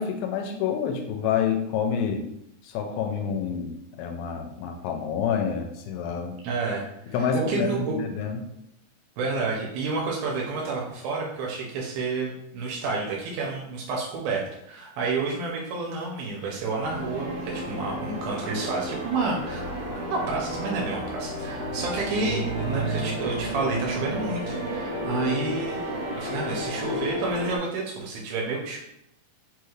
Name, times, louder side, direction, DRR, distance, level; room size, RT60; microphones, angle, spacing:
voice 1, 0.0-2.3 2.6-6.4 7.1-8.4, left 7 dB, 85° left, 4 dB, 2.4 m, -28 dB
voice 2, 6.4-8.0 9.2-25.8 26.1-28.8, right 3 dB, 85° right, -2 dB, 2.5 m, -30 dB
sound 1, 16.8-27.6, right 1 dB, 70° right, 1.6 m, -31 dB
5.6 x 2.4 x 3.1 m, 0.79 s
omnidirectional pair, 4.3 m